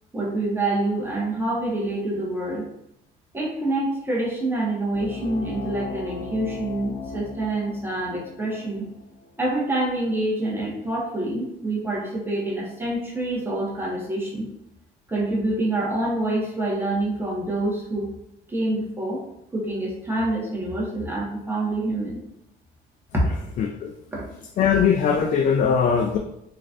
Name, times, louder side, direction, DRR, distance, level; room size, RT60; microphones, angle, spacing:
voice 1, 0.1-2.7 3.3-8.9 9.4-14.5 15.1-18.1 18.5-19.2 19.5-22.2 23.1-23.5 24.1-24.3, right 1 dB, 15° right, -5 dB, 1.3 m, -26 dB
sound 1, 4.9-10.0, left 5 dB, 85° left, 0.7 m, -38 dB
voice 2, 23.6-23.9 24.6-26.2, left 7 dB, 50° left, 3 dB, 0.4 m, -20 dB
3.9 x 3.2 x 2.5 m, 0.81 s
cardioid pair, 110°, 17 cm